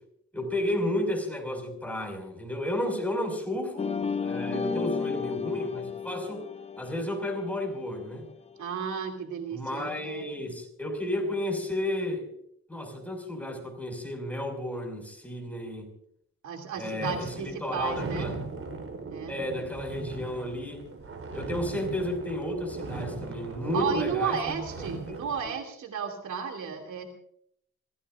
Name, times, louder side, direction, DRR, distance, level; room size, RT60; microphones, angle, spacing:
voice 1, 0.3-6.4 6.8-8.2 9.5-12.2 12.7-15.9 16.8-18.3 19.3-20.8 21.3-25.2, left 1 dB, 5° left, 3 dB, 5.8 m, -32 dB
sound 1, 3.8-8.4, left 5 dB, 20° left, 0.7 m, -33 dB
voice 2, 4.4-4.9 8.6-10.3 16.4-18.3 19.1-19.4 23.7-27.1, right 6 dB, 75° right, 3 dB, 2.7 m, -33 dB
sound 2, 17.0-25.5, right 3 dB, 45° right, 3.9 m, -38 dB
27.0 x 16.0 x 2.5 m, 0.68 s
cardioid pair, 90°, 30 cm